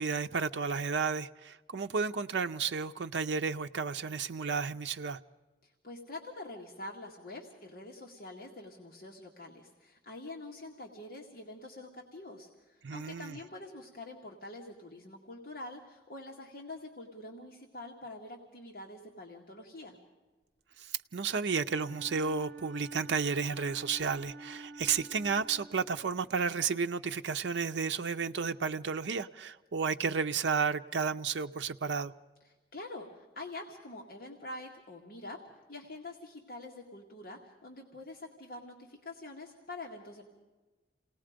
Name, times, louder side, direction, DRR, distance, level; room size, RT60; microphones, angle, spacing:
voice 1, 0.0-5.2 12.8-13.4 20.8-32.1, right 5 dB, 85° right, 0.6 m, -32 dB
voice 2, 5.6-20.0 32.4-35.4 35.7-40.3, left 2 dB, 55° left, 2.0 m, -46 dB
Wind instrument woodwind instrument, 21.6-26.4, right 2 dB, 60° right, 1.0 m, -49 dB
28.5 x 18.5 x 5.1 m
head